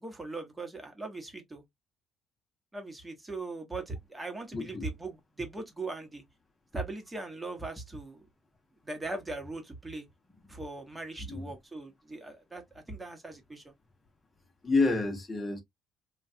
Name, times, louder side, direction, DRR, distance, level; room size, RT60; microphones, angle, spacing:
voice 1, 0.0-1.6 2.7-6.2 6.7-8.2 8.8-10.1 10.5-13.7, right 2 dB, 15° right, 1.2 m, -39 dB
voice 2, 4.5-4.9 11.3-11.5 14.6-15.6, left 3 dB, 15° left, 1.0 m, -28 dB
3.0 x 2.4 x 2.7 m
cardioid pair, 110°, 0 cm